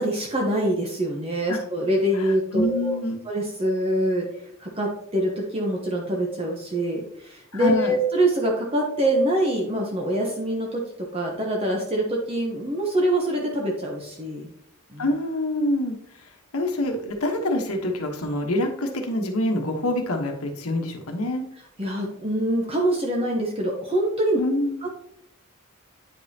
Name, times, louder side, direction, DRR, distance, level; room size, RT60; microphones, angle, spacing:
voice 1, 0.0-3.0 3.3-14.5 14.9-15.1 21.8-24.4 24.8-24.9, right 1 dB, 25° right, -1 dB, 0.9 m, -25 dB
voice 2, 2.1-3.2 7.5-7.9 15.0-15.9 16.5-21.4 24.3-24.8, left 1 dB, 75° left, 3 dB, 1.2 m, -26 dB
9.0 x 5.2 x 2.8 m, 0.72 s
head